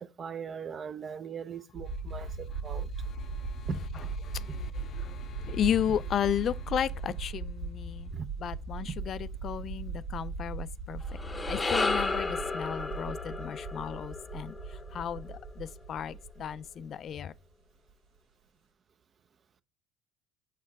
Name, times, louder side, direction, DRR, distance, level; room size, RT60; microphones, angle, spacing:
voice 1, 0.0-2.9 3.7-3.8 8.1-8.3, right 7 dB, 35° right, 0.5 m, -39 dB
sound 1, 1.7-17.4, right 4 dB, 90° right, 2.2 m, -39 dB
voice 2, 3.0-3.7 4.2-8.1 8.4-11.0 11.5-17.3, left 9 dB, 45° left, 0.3 m, -34 dB
sound 2, 11.0-15.5, left 3 dB, 20° left, 0.7 m, -33 dB
7.4 x 4.5 x 3.5 m
supercardioid pair, 90°, 0 cm